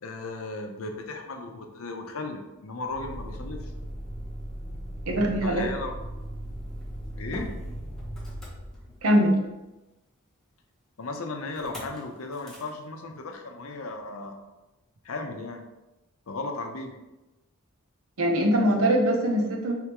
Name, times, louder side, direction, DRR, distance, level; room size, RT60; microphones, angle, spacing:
voice 1, 0.0-3.7 5.4-5.9 7.2-7.5 11.0-14.4 15.0-15.6 16.3-17.0, left 3 dB, 85° left, 4 dB, 0.6 m, -35 dB
Motor vehicle (road), 2.9-9.3 11.5-12.0 12.3-12.7, equal, ahead, 1.0 m, -38 dB
voice 2, 5.1-5.7 9.0-9.4 18.2-19.7, equal, 85° right, 2 dB, 0.8 m, -22 dB
4.7 x 3.4 x 3.0 m, 1.0 s
head